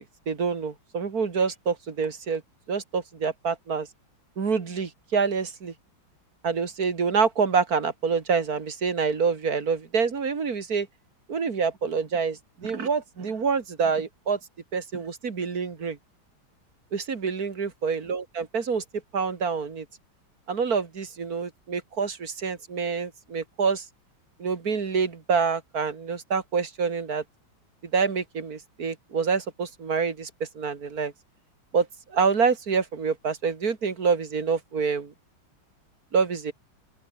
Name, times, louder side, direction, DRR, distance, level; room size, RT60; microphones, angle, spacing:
voice 1, 0.3-2.4 2.7-3.9 4.4-5.7 6.4-10.9 11.3-14.4 14.7-16.0 16.9-18.8 19.1-19.9 20.5-23.8 24.4-27.2 27.9-31.1 31.7-35.1 36.1-36.5, right 5 dB, 45° right, 2.6 m, -27 dB
open air
omnidirectional pair, 2.2 m